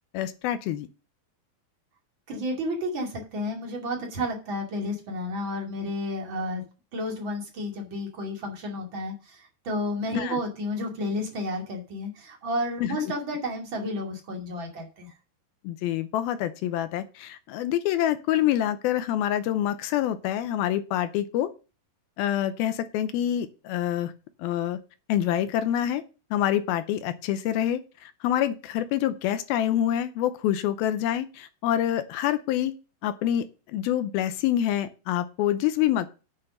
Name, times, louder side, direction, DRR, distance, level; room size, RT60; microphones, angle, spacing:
voice 1, 0.1-0.9 10.1-10.4 12.8-13.0 15.6-21.5 22.2-24.1 24.4-24.8 25.1-26.0 26.3-32.7 33.0-33.5 33.7-36.1, left 11 dB, 80° left, 11 dB, 2.3 m, -26 dB
voice 2, 2.3-6.6 6.9-15.1, left 1 dB, 35° right, 1 dB, 2.6 m, -31 dB
8.9 x 5.5 x 6.3 m, 0.33 s
omnidirectional pair, 4.7 m